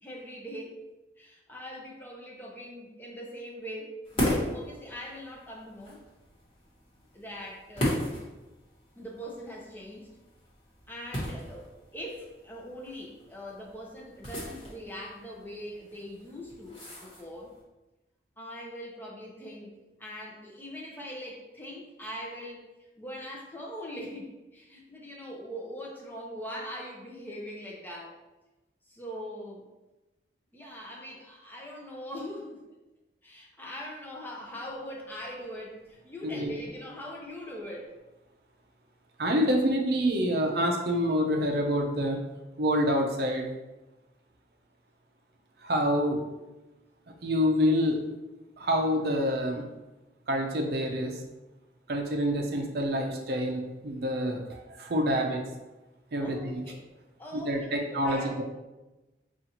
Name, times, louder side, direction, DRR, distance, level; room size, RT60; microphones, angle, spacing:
voice 1, 0.0-0.8 1.2-6.0 7.1-8.1 9.0-10.1 10.9-17.5 18.4-19.7 20.0-22.7 23.0-28.2 28.9-29.6 30.5-32.6 33.2-37.9 56.2-56.9 57.2-58.3, equal, 10° left, -2 dB, 0.5 m, -41 dB
sound 1, 4.0-17.6, left 1 dB, 30° left, 1.2 m, -37 dB
voice 2, 39.2-42.2 42.6-43.5 45.6-46.2 47.2-48.0 48.6-49.6 50.3-51.2 51.9-55.4 56.1-56.6 57.3-58.4, equal, 60° right, 2 dB, 0.5 m, -27 dB
5.2 x 2.4 x 2.8 m, 1.1 s
head